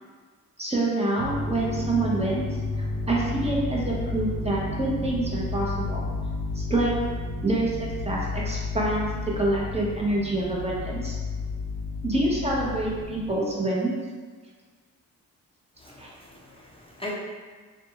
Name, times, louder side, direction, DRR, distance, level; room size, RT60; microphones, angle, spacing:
voice 1, 0.6-6.0 6.5-6.9 7.4-11.1 12.0-13.9 16.0-16.1, right 2 dB, 15° right, -4 dB, 0.8 m, -27 dB
sound 1, 1.2-13.3, left 2 dB, 60° right, 0.6 m, -32 dB
voice 2, 15.8-17.1, left 1 dB, 15° left, -4 dB, 0.5 m, -39 dB
2.6 x 2.3 x 2.9 m, 1.5 s
cardioid pair, 60°, 36 cm